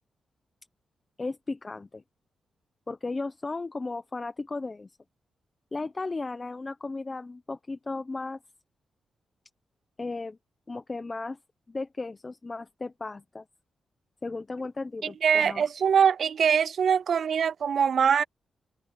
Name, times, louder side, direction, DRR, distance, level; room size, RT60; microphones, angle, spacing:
voice 1, 1.2-2.0 2.9-4.9 5.7-8.4 10.0-10.4 10.7-11.4 11.7-13.4 14.2-15.7, left 3 dB, 30° left, 0.9 m, -35 dB
voice 2, 15.2-18.2, right 7 dB, 65° right, 0.3 m, -23 dB
cardioid pair, 90°, 0 cm